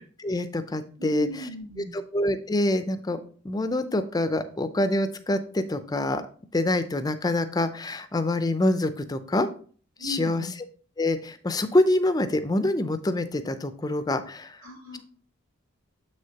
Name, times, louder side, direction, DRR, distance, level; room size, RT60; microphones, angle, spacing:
voice 1, 0.2-1.3 1.9-6.2 6.5-9.5 10.0-10.4 11.0-14.6, left 1 dB, 15° left, 11 dB, 0.4 m, -26 dB
voice 2, 1.0-2.0 10.0-10.5 14.6-15.0, left 2 dB, 65° right, 0 dB, 2.2 m, -36 dB
7.2 x 6.3 x 2.8 m, 0.44 s
head